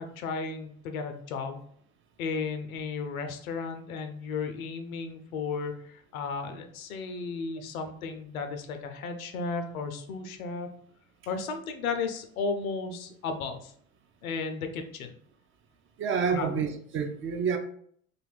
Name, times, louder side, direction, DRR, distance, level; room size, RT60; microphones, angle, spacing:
voice 1, 0.0-1.6 2.2-10.7 11.3-13.7 14.2-15.1 16.3-16.5, left 4 dB, 85° left, 0.5 m, -34 dB
voice 2, 16.0-17.6, right 6 dB, 30° right, 0.4 m, -28 dB
2.6 x 2.3 x 3.3 m
hypercardioid pair, 65°, 41 cm